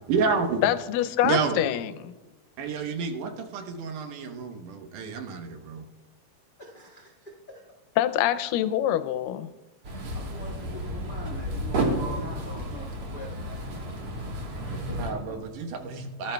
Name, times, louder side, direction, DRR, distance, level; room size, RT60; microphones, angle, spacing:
voice 1, 0.1-0.6 1.2-1.6 2.6-5.8 15.0-16.3, right 5 dB, 75° right, 5 dB, 2.4 m, -29 dB
voice 2, 0.6-1.9 8.0-9.5, left 12 dB, 85° left, 10 dB, 2.2 m, -25 dB
voice 3, 6.6-7.6 10.1-13.4 14.7-15.3, left 1 dB, 60° left, -3 dB, 0.5 m, -42 dB
sound 1, 9.8-15.1, right 1 dB, 55° right, 1.8 m, -31 dB
18.5 x 11.5 x 2.2 m, 1.1 s
omnidirectional pair, 3.9 m